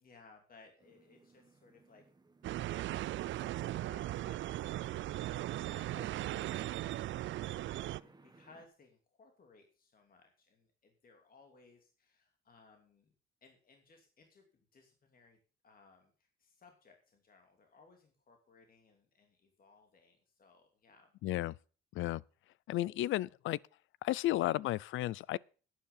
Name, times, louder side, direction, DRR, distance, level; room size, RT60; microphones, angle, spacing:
voice 1, 0.0-2.0 3.1-13.1 13.4-21.1, left 4 dB, 45° left, 2.8 m, -63 dB
sound 1, 0.8-8.7, right 3 dB, 20° right, 1.5 m, -64 dB
sound 2, 2.4-8.0, right 15 dB, 70° right, 0.5 m, -38 dB
voice 2, 21.2-21.6 21.9-22.2 22.7-23.6 24.0-25.4, left 15 dB, 80° left, 0.5 m, -33 dB
11.5 x 10.5 x 5.5 m
cardioid pair, 90°, 20 cm